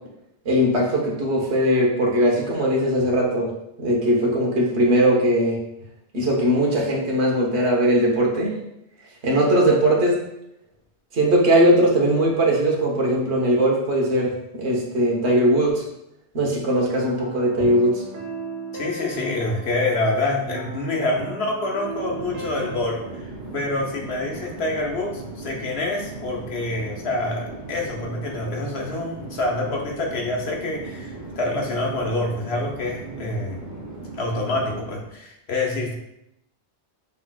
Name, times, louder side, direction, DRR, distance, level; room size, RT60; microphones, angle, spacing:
voice 1, 0.4-3.5 3.8-5.6 6.1-8.5 9.2-10.2 11.1-15.8 16.3-18.0, right 1 dB, 70° right, -1 dB, 1.3 m, -20 dB
sound 1, 17.0-23.2, right 3 dB, 55° right, 0.8 m, -36 dB
voice 2, 18.7-33.6 34.2-35.9, left 2 dB, 65° left, 0 dB, 1.0 m, -26 dB
Chatter / Fixed-wing aircraft airplane, 21.7-35.1, right 3 dB, 20° right, 0.7 m, -38 dB
5.9 x 3.3 x 2.3 m, 0.82 s
omnidirectional pair, 1.2 m